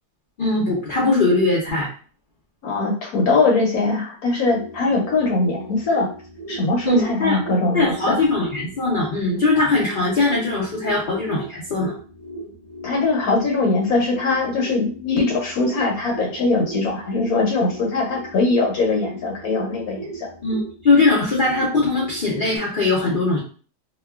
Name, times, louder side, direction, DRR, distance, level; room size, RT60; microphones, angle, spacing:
voice 1, 0.4-1.9 6.8-7.4 7.7-11.9 20.4-23.4, left 3 dB, 80° left, -5 dB, 0.4 m, -20 dB
voice 2, 2.6-6.1 6.5-8.2 12.8-20.3, left 3 dB, 65° left, -1 dB, 1.0 m, -21 dB
sound 1, 4.2-22.6, right 2 dB, 45° right, 0.5 m, -38 dB
2.9 x 2.2 x 2.2 m, 0.39 s
omnidirectional pair, 1.9 m